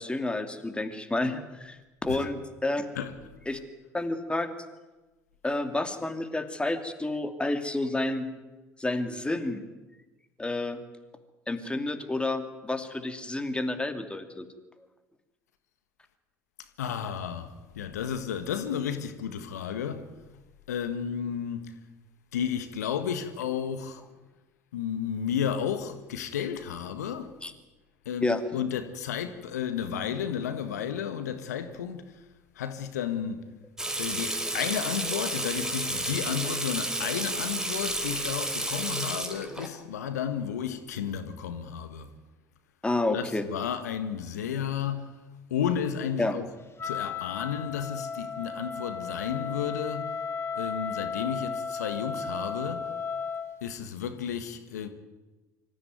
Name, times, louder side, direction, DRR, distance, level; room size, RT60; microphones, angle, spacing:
voice 1, 0.0-2.9 3.5-3.6 3.9-4.5 5.4-8.3 8.8-9.6 10.4-10.8 11.5-14.5 27.4-27.5 28.2-28.4 42.8-43.5 46.2-46.4, left 2 dB, 10° left, 2.7 m, -30 dB
voice 2, 2.9-3.3 16.8-20.1 20.7-21.7 22.3-24.0 24.7-27.3 28.0-32.2 32.5-33.4 34.0-42.1 43.1-45.2 45.5-46.4 46.8-50.1 50.5-52.9 53.6-54.9, left 8 dB, 80° left, 1.6 m, -32 dB
Water tap faucet / Sink (filling or washing), 33.8-39.7, right 1 dB, 5° right, 3.7 m, -31 dB
Wind instrument woodwind instrument, 46.8-53.6, left 5 dB, 30° left, 2.4 m, -34 dB
25.0 x 15.0 x 9.4 m
hypercardioid pair, 65°, 9 cm